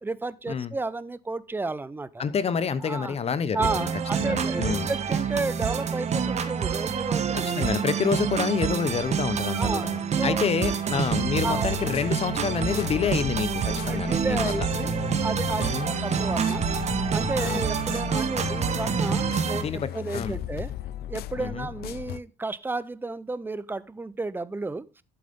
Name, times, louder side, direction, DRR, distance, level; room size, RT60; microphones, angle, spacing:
voice 1, 0.0-2.2 2.8-3.2 3.5-7.5 9.4-9.9 10.2-10.5 11.4-11.7 13.9-14.9 15.2-16.6 17.1-20.7 21.1-25.0, right 3 dB, 10° right, 0.7 m, -32 dB
voice 2, 2.2-3.9 4.2-4.9 7.3-14.7 15.6-15.9 17.4-17.7 19.6-20.4 21.4-21.7, left 6 dB, 35° left, 0.9 m, -28 dB
sound 1, 3.6-19.6, right 7 dB, 40° right, 1.4 m, -27 dB
sound 2, 11.1-22.2, left 13 dB, 70° left, 0.5 m, -36 dB
11.5 x 7.9 x 3.7 m
cardioid pair, 110°, 17 cm